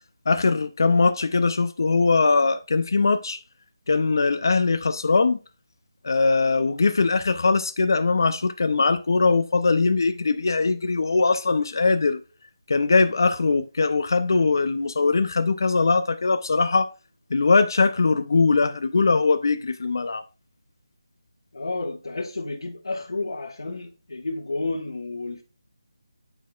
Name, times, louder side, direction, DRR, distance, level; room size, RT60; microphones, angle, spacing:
voice 1, 0.3-3.4 3.9-5.4 6.0-12.2 12.7-16.9 17.3-20.2, left 4 dB, 50° left, 0.5 m, -21 dB
voice 2, 21.5-25.4, left 2 dB, 65° left, 1.6 m, -31 dB
11.0 x 3.7 x 2.3 m
figure-of-eight pair, 175°, 3 cm